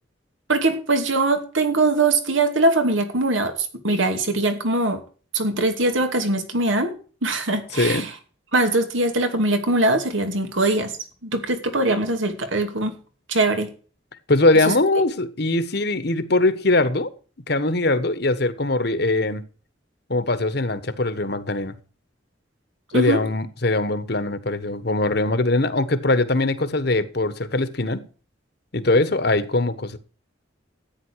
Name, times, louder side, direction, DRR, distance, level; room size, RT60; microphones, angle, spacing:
voice 1, 0.5-3.5 3.8-5.0 5.3-6.9 7.2-8.1 8.5-10.9 11.2-12.9 13.3-13.7 14.6-14.8 22.9-23.2, right 2 dB, 85° right, 2.6 m, -21 dB
voice 2, 7.7-8.1 14.3-17.1 17.5-19.4 20.1-21.7 22.9-28.0 28.7-30.0, left 2 dB, 55° left, 1.3 m, -21 dB
13.5 x 9.3 x 4.7 m
head